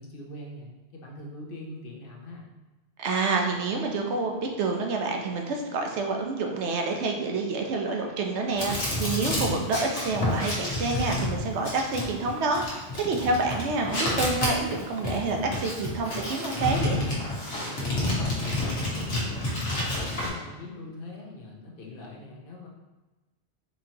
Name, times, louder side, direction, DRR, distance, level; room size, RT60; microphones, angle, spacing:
voice 1, 0.0-2.5 17.7-22.7, left 2 dB, 55° left, -1 dB, 0.8 m, -42 dB
voice 2, 3.0-17.0, right 3 dB, 80° right, 2 dB, 0.9 m, -28 dB
sound 1, 3.5-12.7, right 2 dB, 50° right, 0.9 m, -50 dB
sound 2, 8.6-20.3, left 2 dB, 85° left, 1.3 m, -29 dB
sound 3, 11.2-11.7 13.2-13.7 15.0-15.7, right 6 dB, 30° left, 0.7 m, -43 dB
4.2 x 2.9 x 2.7 m, 1.1 s
omnidirectional pair, 1.2 m